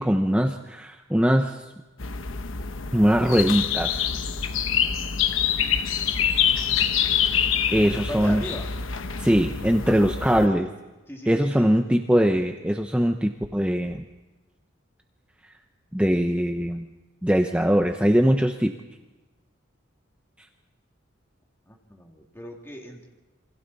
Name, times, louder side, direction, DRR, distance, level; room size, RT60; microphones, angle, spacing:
voice 1, 0.0-1.6 2.9-4.1 7.7-8.4 9.2-10.7 11.3-14.0 15.9-16.9 17.2-18.7, equal, 5° right, 4 dB, 0.9 m, -21 dB
sound 1, 2.0-10.5, left 8 dB, 85° left, 1.1 m, -26 dB
voice 2, 6.5-6.9 7.7-8.7 9.8-10.1 11.1-11.7 21.7-23.1, left 1 dB, 10° left, 0 dB, 2.6 m, -39 dB
28.0 x 25.0 x 4.2 m, 1.2 s
head